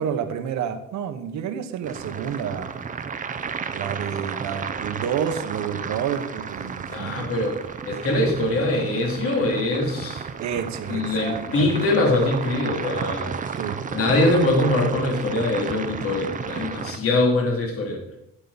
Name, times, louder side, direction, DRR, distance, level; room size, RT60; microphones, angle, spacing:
voice 1, 0.0-2.7 3.7-7.3 10.4-11.7 13.6-13.8, right 8 dB, 70° right, 7 dB, 1.3 m, -29 dB
sound 1, 1.8-17.0, right 6 dB, 25° right, 0.7 m, -33 dB
voice 2, 6.9-7.6 7.9-10.2 10.9-13.3 13.9-18.0, left 2 dB, 50° left, 0 dB, 3.0 m, -23 dB
13.5 x 8.5 x 4.1 m, 0.78 s
cardioid pair, 150°, 29 cm